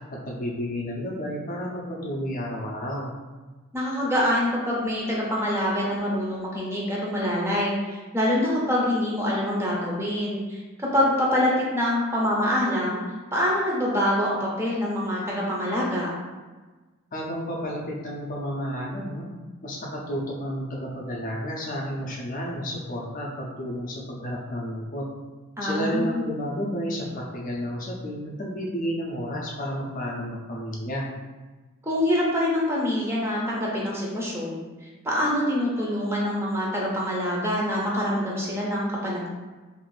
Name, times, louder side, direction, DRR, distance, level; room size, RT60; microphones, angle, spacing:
voice 1, 0.1-3.1 17.1-19.3 19.6-25.1 25.6-31.1, equal, 40° left, -3 dB, 0.5 m, -31 dB
voice 2, 3.7-13.0 13.3-16.1 25.6-26.2 31.8-39.3, left 1 dB, 10° right, -5 dB, 0.5 m, -25 dB
2.5 x 2.4 x 3.2 m, 1.3 s
head